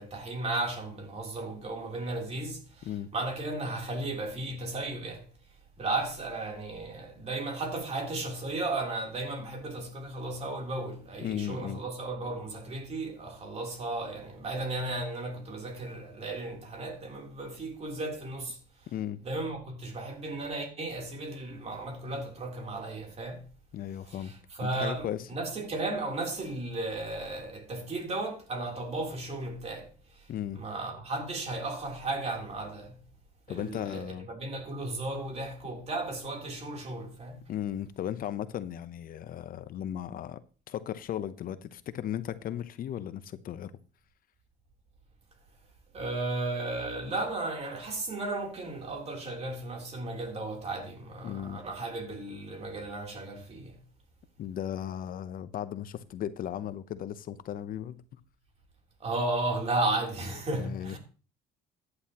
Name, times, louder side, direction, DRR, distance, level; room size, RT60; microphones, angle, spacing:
voice 1, 0.0-2.9 3.1-5.3 5.8-18.6 19.2-23.4 24.1-30.3 30.5-33.0 33.5-37.4 45.9-53.8 59.0-61.0, right 2 dB, 40° right, 3.4 m, -35 dB
voice 2, 2.8-3.1 11.2-11.8 18.9-19.2 23.7-24.3 24.6-25.3 30.3-30.6 33.5-34.3 37.5-40.4 40.7-43.7 51.2-51.6 54.4-58.2 60.5-61.0, left 10 dB, 55° left, 0.8 m, -36 dB
14.5 x 9.7 x 3.0 m
cardioid pair, 110°, 17 cm